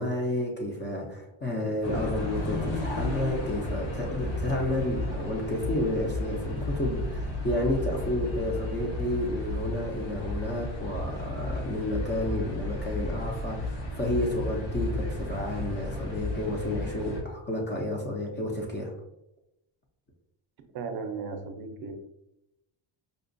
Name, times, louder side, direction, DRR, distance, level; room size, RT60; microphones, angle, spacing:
voice 1, 0.0-18.9, left 1 dB, 25° left, -1 dB, 0.4 m, -31 dB
sound 1, 1.8-17.2, left 1 dB, 65° left, 1.0 m, -33 dB
voice 2, 20.7-21.9, right 4 dB, 50° right, 5 dB, 0.5 m, -35 dB
5.0 x 2.2 x 2.5 m, 0.86 s
cardioid pair, 155°, 49 cm